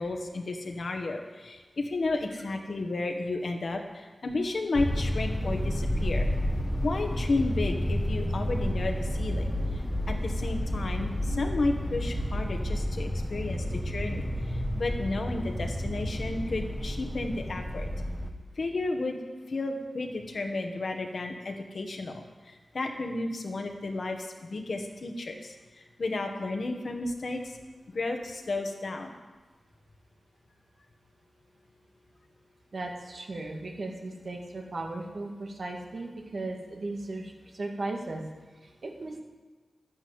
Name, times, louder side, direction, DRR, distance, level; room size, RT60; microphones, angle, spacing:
voice 1, 0.0-6.3 6.8-9.5 10.1-17.9 18.6-19.2 19.5-25.5 26.0-27.6 27.9-29.1, left 2 dB, 65° left, 4 dB, 1.7 m, -32 dB
sound 1, 4.7-18.3, equal, 10° left, 1.3 m, -30 dB
voice 2, 32.7-38.2 38.6-39.2, right 2 dB, 65° right, 1 dB, 2.4 m, -36 dB
11.5 x 10.5 x 8.0 m, 1.3 s
wide cardioid pair, 80°, 0 cm